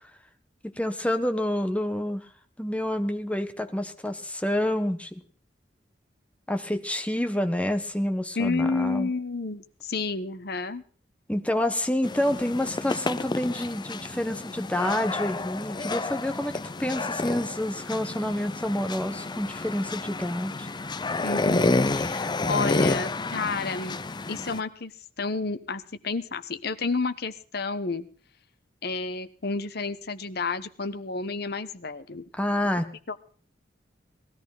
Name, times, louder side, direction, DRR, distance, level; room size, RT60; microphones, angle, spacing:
voice 1, 0.6-2.2 2.6-5.1 6.5-9.1 11.3-20.7 32.4-32.8, left 1 dB, 10° left, 7 dB, 1.4 m, -28 dB
voice 2, 8.4-10.8 21.2-24.0 24.3-24.9 25.2-28.1 28.8-32.2 33.1-33.2, left 3 dB, 60° left, 11 dB, 1.1 m, -30 dB
sound 1, 12.0-24.6, left 2 dB, 25° left, 0.6 m, -30 dB
19.5 x 13.5 x 4.1 m, 0.41 s
head